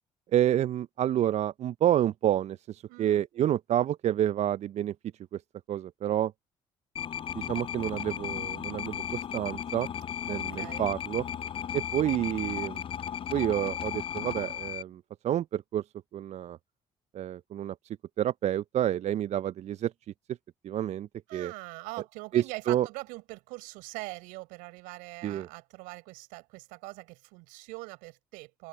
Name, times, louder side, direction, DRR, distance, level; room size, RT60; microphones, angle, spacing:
voice 1, 0.3-4.9 5.3-5.4 5.7-6.3 7.4-9.9 10.3-11.2 11.7-12.8 13.3-15.8 16.1-16.6 17.1-17.8 18.2-19.9 20.6-21.5 22.3-22.9 25.2-25.5, right 11 dB, 50° right, 0.5 m, -29 dB
voice 2, 2.9-3.2 10.3-10.9 21.3-28.7, right 25 dB, 75° right, 6.1 m, -42 dB
sound 1, 7.0-14.8, left 9 dB, 40° left, 0.4 m, -35 dB
open air
hypercardioid pair, 55°, 14 cm